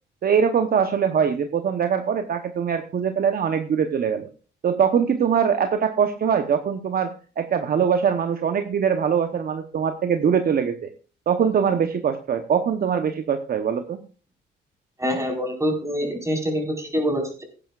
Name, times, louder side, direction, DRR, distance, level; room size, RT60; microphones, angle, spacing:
voice 1, 0.2-4.3 4.6-10.9 11.3-14.0, right 7 dB, 50° right, 7 dB, 1.0 m, -22 dB
voice 2, 15.0-17.4, equal, 15° right, 2 dB, 4.6 m, -25 dB
17.0 x 10.0 x 2.4 m, 0.38 s
cardioid pair, 90°, 20 cm